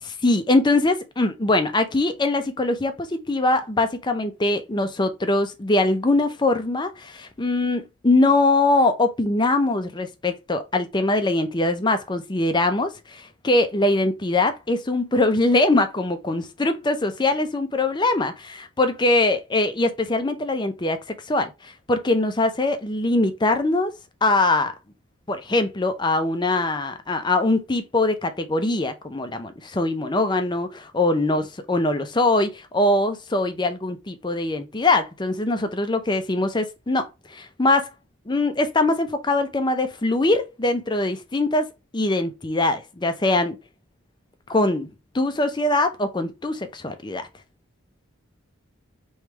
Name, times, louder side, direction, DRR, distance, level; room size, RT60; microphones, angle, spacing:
voice 1, 0.0-23.9 24.2-24.7 25.3-37.9 38.3-43.6 44.5-44.9 45.1-47.3, left 2 dB, 20° left, 0.6 m, -22 dB
3.4 x 3.2 x 4.6 m
head